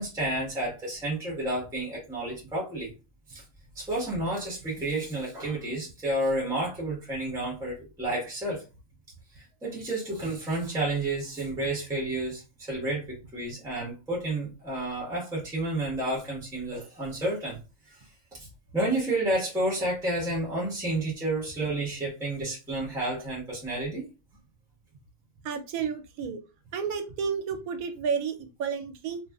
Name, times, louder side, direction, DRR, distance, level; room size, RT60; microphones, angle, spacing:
voice 1, 0.0-2.9 3.3-3.4 3.7-8.6 9.3-17.6 17.9-18.0 18.4-18.5 18.7-24.0, right 1 dB, ahead, -4 dB, 0.9 m, -30 dB
voice 2, 25.4-26.4 26.7-29.2, right 6 dB, 80° right, 7 dB, 1.0 m, -31 dB
2.7 x 2.3 x 2.3 m, 0.29 s
omnidirectional pair, 1.5 m